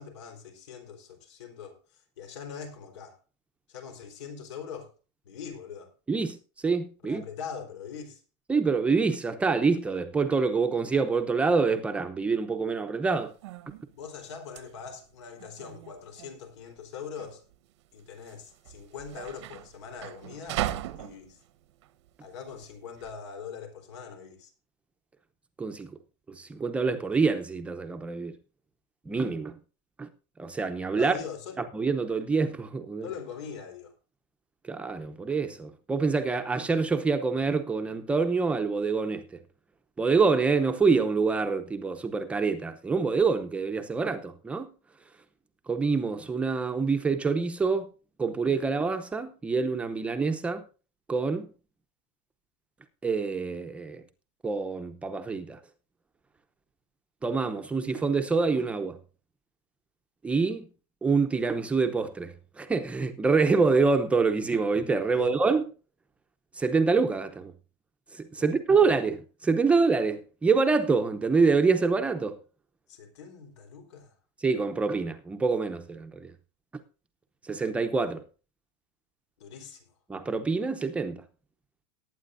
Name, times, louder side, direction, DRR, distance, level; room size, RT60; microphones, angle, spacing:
voice 1, 0.0-1.8 2.2-3.2 3.7-4.9 5.2-5.9 7.0-8.2 13.9-17.4 17.9-20.6 21.0-21.4 22.2-24.5 30.9-31.6 33.0-33.9 65.1-65.3 68.4-68.9 72.9-74.1 79.4-79.9, left 6 dB, 85° left, 4.1 m, -42 dB
voice 2, 6.1-7.2 8.5-13.3 25.6-26.0 26.3-28.4 29.1-29.6 30.0-30.1 30.4-31.2 31.7-33.1 34.6-39.4 40.0-44.7 45.7-47.9 48.2-50.7 51.1-51.5 53.0-54.0 54.4-55.6 57.2-59.0 60.2-60.7 61.0-65.7 66.6-67.5 68.1-72.4 74.4-76.3 77.4-78.2 80.1-81.2, right 4 dB, 10° right, 0.7 m, -26 dB
sound 1, 13.1-23.1, right 14 dB, 80° right, 1.1 m, -39 dB
19.5 x 9.2 x 2.6 m
supercardioid pair, 170°, 15 cm